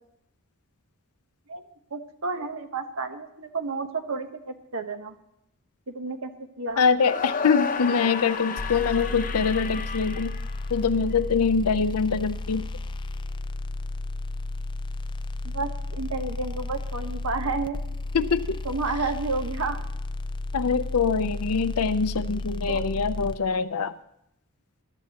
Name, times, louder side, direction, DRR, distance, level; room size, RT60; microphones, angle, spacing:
voice 1, 1.9-5.2 5.9-6.3 6.6-6.8 15.4-17.8 18.6-19.8 22.7-23.0, right 3 dB, 65° right, 7 dB, 1.1 m, -31 dB
voice 2, 6.8-10.3 10.7-12.7 18.1-18.6 20.5-23.9, left 5 dB, 75° left, 10 dB, 0.6 m, -24 dB
sound 1, 7.0-11.2, left 6 dB, 40° left, 0.8 m, -32 dB
sound 2, 8.6-23.3, left 2 dB, 20° left, 0.4 m, -33 dB
21.0 x 11.5 x 2.9 m, 0.78 s
head